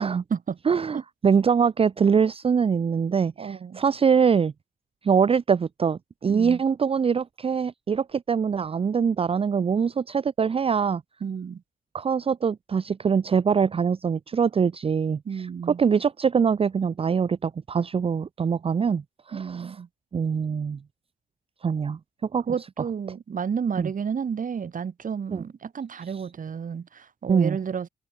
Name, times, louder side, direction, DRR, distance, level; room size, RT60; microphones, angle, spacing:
voice 1, 0.7-4.5 5.0-11.0 11.9-15.5 15.8-19.0 19.3-19.7 20.1-20.8 21.6-22.0 22.3-22.4 23.8-23.9 25.3-25.4 27.3-27.6, right 6 dB, 35° right, 0.5 m, -23 dB
voice 2, 3.4-3.8 6.3-6.6 11.2-11.6 15.2-15.8 19.3-19.9 22.5-27.9, right 7 dB, 55° right, 4.1 m, -31 dB
cardioid pair, 75°, 16 cm